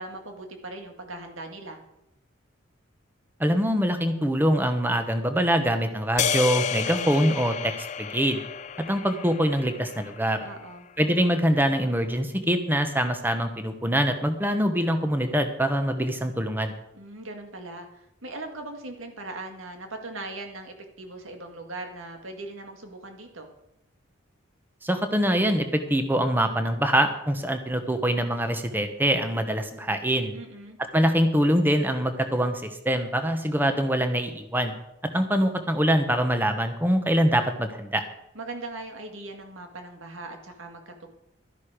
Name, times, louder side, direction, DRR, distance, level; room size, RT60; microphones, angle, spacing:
voice 1, 0.0-1.8 10.4-10.9 16.9-23.5 30.3-30.8 38.3-41.1, right 2 dB, 80° right, 4 dB, 2.0 m, -39 dB
voice 2, 3.4-8.4 8.9-10.4 11.0-16.7 24.8-30.4 30.9-34.8 35.1-38.0, equal, 10° right, 7 dB, 1.1 m, -24 dB
sound 1, 6.2-10.5, left 8 dB, 35° left, 0.4 m, -31 dB
13.0 x 10.5 x 5.1 m, 0.84 s
head